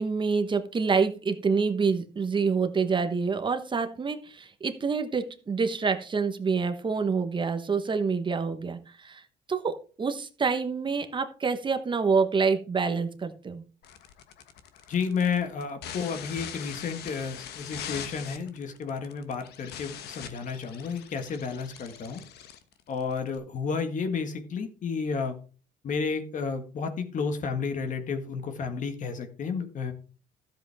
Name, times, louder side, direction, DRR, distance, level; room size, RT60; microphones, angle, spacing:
voice 1, 0.0-9.2 9.5-13.6, right 5 dB, 30° right, 8 dB, 1.1 m, -27 dB
sound 1, 13.8-23.4, left 9 dB, 75° left, 1.2 m, -42 dB
voice 2, 14.9-22.2 22.9-25.4 25.8-29.9, left 5 dB, 50° left, 7 dB, 1.7 m, -31 dB
13.0 x 7.7 x 3.5 m, 0.38 s
cardioid pair, 110°, 17 cm